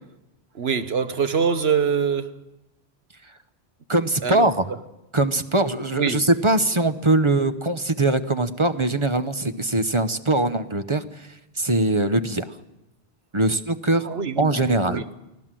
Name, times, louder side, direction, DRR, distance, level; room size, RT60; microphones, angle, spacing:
voice 1, 0.5-2.4 4.2-4.5 6.0-6.2 14.0-15.0, right 6 dB, 70° right, 1.4 m, -24 dB
voice 2, 3.9-4.6 5.1-11.3 11.6-12.5 13.3-14.1 14.4-15.0, right 2 dB, 30° right, 0.9 m, -22 dB
24.0 x 16.5 x 7.6 m
omnidirectional pair, 1.1 m